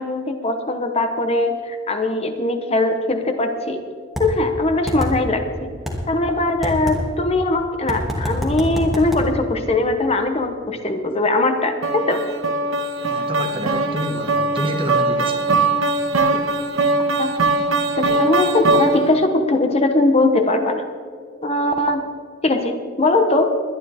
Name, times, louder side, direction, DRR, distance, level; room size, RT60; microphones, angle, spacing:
voice 1, 0.0-3.8 4.2-5.7 6.1-12.2 17.2-20.8 21.4-22.0 22.4-23.5, left 2 dB, 30° left, 6 dB, 0.9 m, -20 dB
sound 1, 4.2-4.3 4.9-5.1 5.9-6.0 6.6-7.0 7.9-9.2, equal, ahead, 2.3 m, -24 dB
sound 2, 11.8-19.3, right 3 dB, 70° right, 1.6 m, -21 dB
voice 2, 13.0-15.7 16.3-16.5, equal, 25° right, 3 dB, 1.6 m, -28 dB
21.5 x 11.0 x 3.5 m, 2.2 s
head